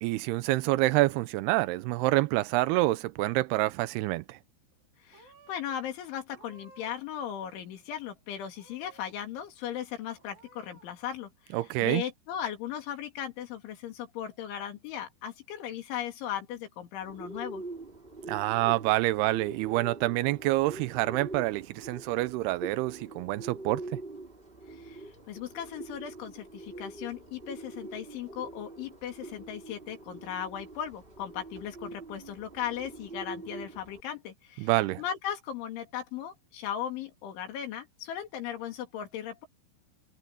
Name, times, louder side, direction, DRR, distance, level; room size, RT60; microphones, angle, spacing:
voice 1, 0.0-4.4 11.5-12.0 18.3-24.0 34.6-35.0, right 19 dB, 85° right, 2.3 m, -27 dB
Purr / Meow, 3.2-3.3 3.5-4.1 4.7-4.9 5.1-5.7 6.3-7.1 7.4-8.1 8.5-9.1 9.6-9.7 10.2-10.9, right 2 dB, 50° right, 5.5 m, -58 dB
voice 2, 5.0-17.6 24.7-34.7 35.0-39.5, left 9 dB, 85° left, 5.2 m, -37 dB
Bird, 17.0-34.0, right 2 dB, 20° right, 1.8 m, -44 dB
omnidirectional pair, 5.3 m